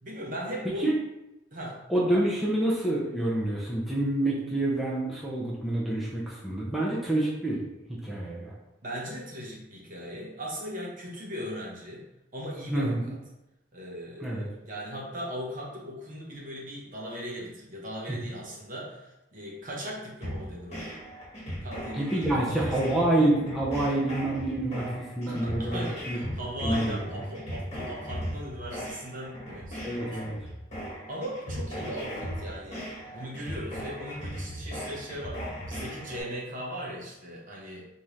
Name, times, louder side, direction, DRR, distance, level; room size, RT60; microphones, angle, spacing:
voice 1, 0.0-0.9 1.5-1.8 8.8-12.0 12.3-13.2 13.7-21.0 21.6-22.9 25.3-30.2 31.1-37.9, equal, 45° right, -3 dB, 0.9 m, -38 dB
voice 2, 1.9-7.6 7.9-8.5 12.7-13.1 14.2-14.5 18.1-18.2 21.9-26.2 26.6-27.2 29.8-30.4, right 1 dB, ahead, -6 dB, 0.5 m, -27 dB
sound 1, 20.2-36.2, equal, 35° left, 1.3 m, -38 dB
3.5 x 2.7 x 3.1 m, 0.93 s
head